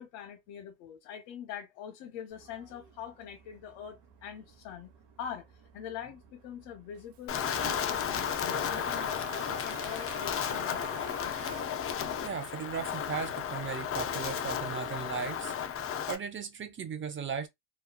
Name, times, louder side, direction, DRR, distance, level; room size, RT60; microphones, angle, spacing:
voice 1, 0.0-4.9 5.2-5.5 5.7-11.2, left 9 dB, 80° left, 0.9 m, -44 dB
Toilet flush, 2.3-14.5, right 7 dB, 60° right, 1.0 m, -51 dB
Wind, 7.3-16.2, left 8 dB, 30° left, 0.5 m, -33 dB
voice 2, 12.2-15.6 16.1-17.5, right 6 dB, 25° right, 0.6 m, -37 dB
3.0 x 2.3 x 2.2 m
supercardioid pair, 100°, 49 cm